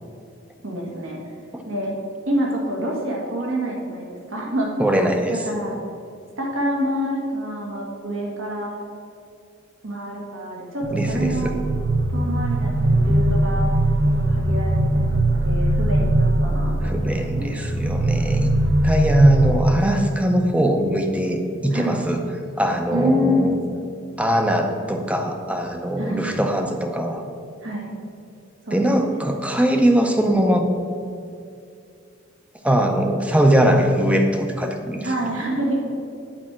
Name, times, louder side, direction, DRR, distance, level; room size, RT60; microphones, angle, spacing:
voice 1, 0.6-1.2 1.7-1.9 2.3-4.7 5.5-5.7 6.4-8.7 9.8-11.5 12.1-13.7 14.3-17.5 21.7-22.0 22.9-23.5 26.0-26.3 27.6-27.9 28.7-29.3 35.0-35.8, equal, 75° right, -2 dB, 1.9 m, -27 dB
voice 2, 4.8-5.4 10.9-11.5 16.8-18.5 18.8-22.2 22.6-23.5 24.2-27.2 28.7-30.7 32.6-35.3, right 1 dB, 5° right, 4 dB, 0.6 m, -21 dB
sound 1, 10.8-19.6, right 1 dB, 55° right, 0.7 m, -20 dB
8.9 x 4.8 x 7.4 m, 2.4 s
head